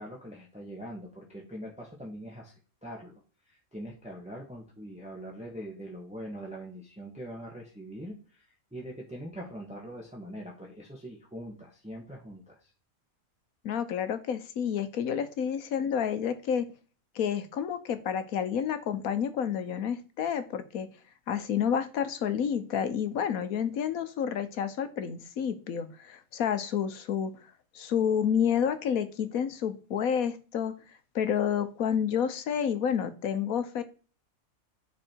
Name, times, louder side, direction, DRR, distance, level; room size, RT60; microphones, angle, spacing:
voice 1, 0.0-2.5 2.8-3.1 3.4-12.7, equal, 5° right, -2 dB, 1.4 m, -42 dB
voice 2, 13.6-16.7 17.1-20.9 21.3-27.3 27.7-30.7 31.1-33.8, left 8 dB, 80° left, 10 dB, 1.3 m, -29 dB
9.9 x 4.1 x 4.5 m, 0.37 s
omnidirectional pair, 1.5 m